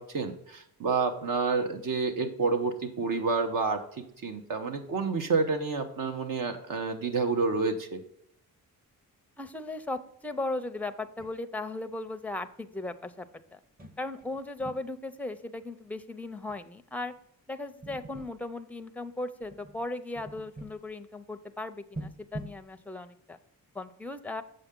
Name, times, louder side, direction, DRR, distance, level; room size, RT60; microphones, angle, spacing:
voice 1, 0.0-8.0, right 4 dB, 60° right, 6 dB, 1.0 m, -29 dB
voice 2, 9.4-13.3 13.5-13.6 14.0-17.1 17.5-23.4 23.7-24.4, left 2 dB, 5° left, 9 dB, 0.5 m, -37 dB
sound 1, 11.0-11.6 12.6-12.7 13.5-13.6 13.8-14.8 16.5-16.6 16.9-17.0 17.8-18.4 19.4-19.9 20.1-20.8 21.9-22.6, right 1 dB, 25° right, 0.9 m, -43 dB
7.7 x 7.0 x 3.7 m, 0.71 s
cardioid pair, 125°, 36 cm